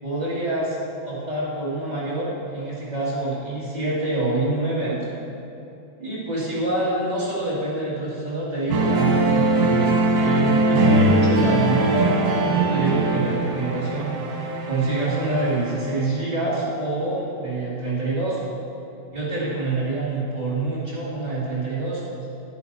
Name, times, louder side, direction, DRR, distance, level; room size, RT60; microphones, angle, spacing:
voice 1, 0.0-0.7 1.0-5.0 6.0-14.4 14.7-18.4 19.1-22.0, right 2 dB, 20° right, -9 dB, 1.2 m, -26 dB
sound 1, 8.7-16.2, right 2 dB, 85° right, 3.2 m, -21 dB
10.5 x 9.7 x 4.1 m, 2.8 s
omnidirectional pair, 4.3 m